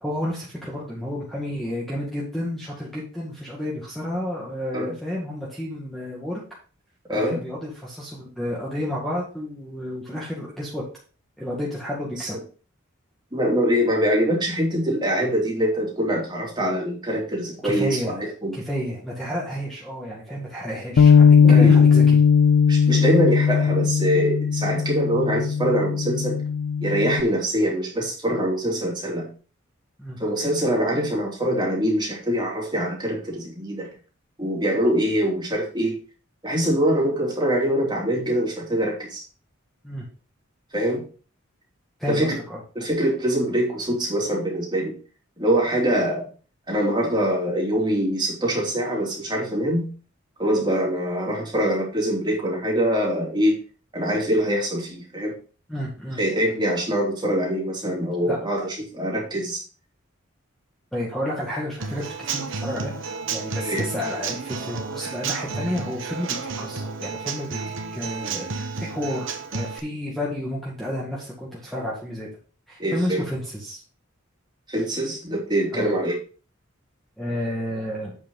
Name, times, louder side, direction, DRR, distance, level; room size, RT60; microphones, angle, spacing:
voice 1, 0.0-6.4 7.1-10.8 11.4-12.4 17.6-18.1 18.5-22.2 30.0-30.2 39.8-40.1 42.0-42.6 55.7-56.2 58.2-58.4 60.9-62.9 63.3-67.6 67.9-72.3 72.7-73.8 75.7-75.9 77.2-78.2, equal, ahead, -5 dB, 2.0 m, -31 dB
voice 2, 7.1-7.4 12.2-12.3 13.3-18.6 21.4-21.8 22.7-26.4 26.8-29.3 30.2-33.9 34.4-35.9 36.4-39.2 40.7-41.0 42.1-42.4 42.7-45.0 45.4-46.3 46.7-49.9 50.4-53.6 53.9-55.3 56.2-59.6 63.6-63.9 72.8-73.2 74.7-76.2, equal, 20° right, -2 dB, 3.0 m, -24 dB
Bass guitar, 21.0-27.2, left 6 dB, 60° left, 0.3 m, -17 dB
Human voice / Acoustic guitar / Drum, 61.8-69.8, right 4 dB, 65° right, 1.1 m, -31 dB
8.4 x 6.6 x 3.9 m, 0.37 s
head